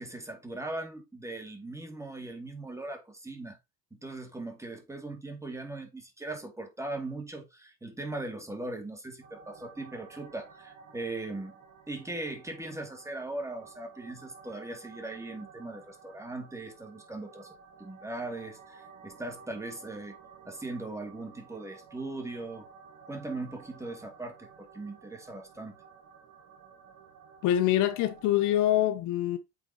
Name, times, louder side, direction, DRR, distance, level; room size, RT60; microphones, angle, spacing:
voice 1, 0.0-3.6 3.9-11.5 11.9-17.5 17.8-20.2 20.4-22.7 23.1-25.8, right 2 dB, 10° right, 2.5 m, -39 dB
sound 1, 9.2-28.8, right 5 dB, 55° right, 1.9 m, -53 dB
voice 2, 27.4-29.4, left 12 dB, 60° left, 1.0 m, -25 dB
8.4 x 4.7 x 3.0 m
hypercardioid pair, 70°, 34 cm